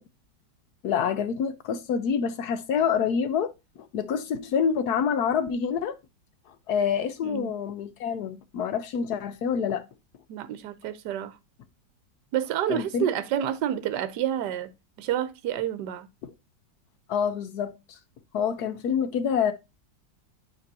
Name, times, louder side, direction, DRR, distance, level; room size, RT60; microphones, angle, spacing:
voice 1, 0.8-6.0 6.7-9.9 12.7-13.0 17.1-18.0 18.3-19.5, left 7 dB, 70° left, 1.1 m, -27 dB
voice 2, 7.2-7.5 10.3-11.4 12.3-14.7 15.0-16.1, right 11 dB, 70° right, 1.3 m, -29 dB
9.3 x 5.2 x 2.6 m
omnidirectional pair, 2.0 m